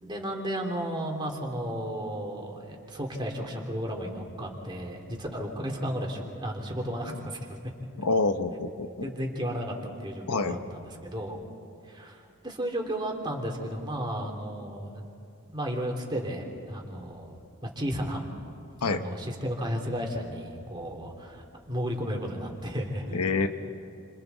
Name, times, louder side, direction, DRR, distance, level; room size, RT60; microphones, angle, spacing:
voice 1, 0.0-7.6 9.0-9.7 10.0-11.4 11.8-15.1 15.5-18.2 18.8-23.5, equal, 20° right, 0 dB, 2.8 m, -33 dB
voice 2, 8.0-8.9 10.3-10.6 18.8-19.0 23.1-23.5, left 3 dB, 90° left, 8 dB, 1.0 m, -26 dB
29.5 x 26.5 x 4.0 m, 2.6 s
head